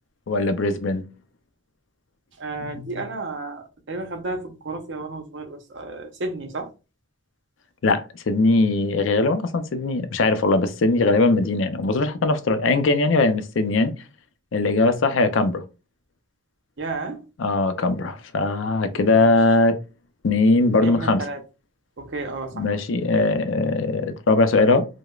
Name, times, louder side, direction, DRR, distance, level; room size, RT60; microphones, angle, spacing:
voice 1, 0.3-1.0 2.6-2.9 7.8-13.9 14.5-15.6 17.4-19.8 20.2-21.2 22.5-24.9, left 3 dB, 70° left, 0.5 m, -20 dB
voice 2, 2.4-6.7 16.8-17.3 18.8-19.4 20.8-21.4 22.0-22.7, right 3 dB, 60° right, 0.7 m, -32 dB
4.7 x 2.1 x 2.3 m
head